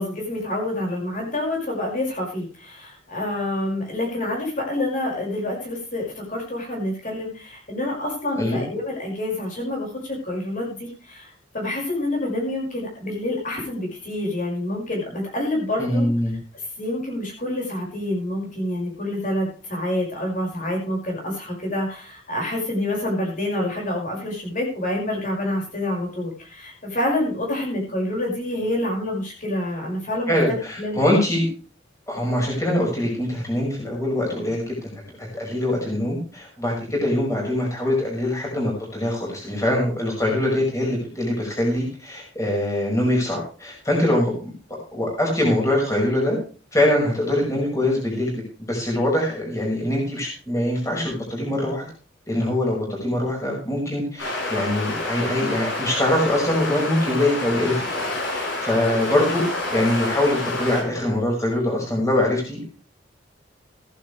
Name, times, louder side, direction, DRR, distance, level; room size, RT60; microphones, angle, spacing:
voice 1, 0.0-16.1 16.5-30.4 30.8-31.0, left 1 dB, 45° left, -1 dB, 5.8 m, -27 dB
voice 2, 15.8-16.3 30.3-31.5 32.1-34.9 35.2-44.5 44.9-46.4 46.7-48.3 48.7-51.9 52.3-62.6, left 1 dB, 15° left, -2 dB, 5.7 m, -23 dB
sound 1, 54.2-60.8, left 2 dB, 90° left, 7.1 m, -28 dB
15.5 x 11.5 x 3.4 m, 0.39 s
head